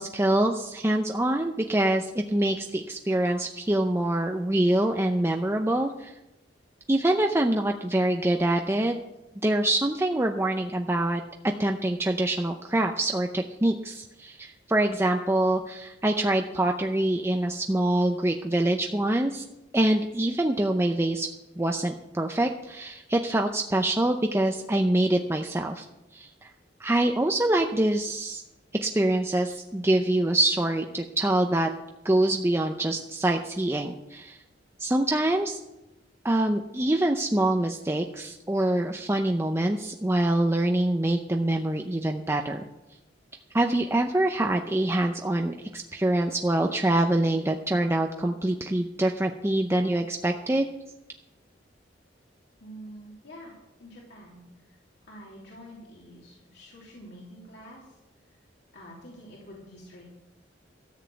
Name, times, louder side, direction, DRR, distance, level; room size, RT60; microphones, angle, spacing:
voice 1, 0.0-6.1 6.9-9.0 9.4-11.2 11.6-19.4 19.7-21.3 21.6-25.9 26.1-26.5 26.8-28.4 28.8-31.7 32.0-34.4 34.8-35.6 36.2-42.6 43.5-50.7, right 1 dB, 15° right, 3 dB, 0.6 m, -25 dB
voice 2, 52.6-53.5 53.8-54.4 55.1-57.8 58.7-60.1, equal, 65° left, -4 dB, 2.9 m, -46 dB
13.5 x 7.3 x 7.8 m, 0.96 s
head